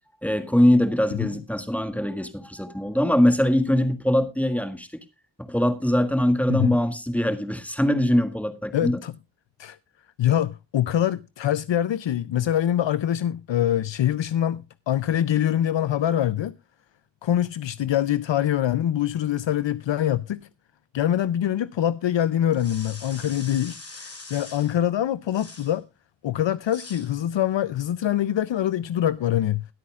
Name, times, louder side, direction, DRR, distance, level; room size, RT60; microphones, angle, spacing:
voice 1, 0.2-4.9 5.4-9.0, left 1 dB, 5° left, 1.6 m, -22 dB
voice 2, 8.7-9.2 9.6-9.8 10.2-16.5 17.2-20.4 20.9-25.8 26.2-29.7, left 11 dB, 80° left, 0.5 m, -24 dB
sound 1, 22.5-24.8 25.3-25.8 26.6-27.1, left 2 dB, 35° left, 2.5 m, -43 dB
21.5 x 8.4 x 2.4 m
wide cardioid pair, 85°, 44 cm